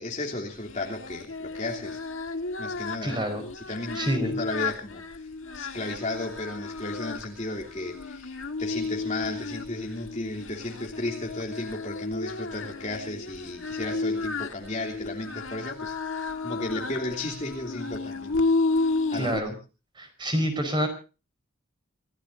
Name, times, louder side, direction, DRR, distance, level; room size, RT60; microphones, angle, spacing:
voice 1, 0.0-2.0 2.6-3.2 3.5-5.3 5.5-18.5 18.8-19.5, left 2 dB, 35° left, 0 dB, 3.0 m, -34 dB
Singing, 0.6-19.4, left 3 dB, 70° left, 1.7 m, -32 dB
voice 2, 3.0-3.4 3.9-4.4 19.2-19.5 20.0-20.9, equal, 20° right, 7 dB, 5.0 m, -27 dB
27.5 x 17.0 x 2.7 m, 0.35 s
head